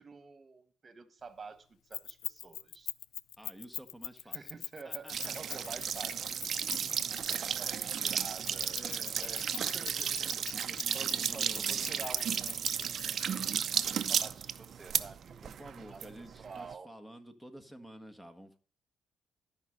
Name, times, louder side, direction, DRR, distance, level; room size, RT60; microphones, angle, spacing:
voice 1, 0.0-2.9 4.3-7.0 7.3-8.8 9.1-10.5 10.9-13.4 13.6-15.6 15.9-16.1 16.4-16.9, right 4 dB, 35° right, 1.5 m, -49 dB
Keys jangling, 1.9-7.6 8.4-13.2, left 12 dB, 80° left, 0.4 m, -41 dB
voice 2, 3.4-4.5 4.8-5.8 6.7-6.9 8.7-9.8 10.6-12.1 15.4-18.6, right 1 dB, 5° left, 1.6 m, -51 dB
sound 1, 5.1-16.7, right 8 dB, 60° right, 0.6 m, -34 dB
12.5 x 5.3 x 6.2 m
cardioid pair, 90°, 0 cm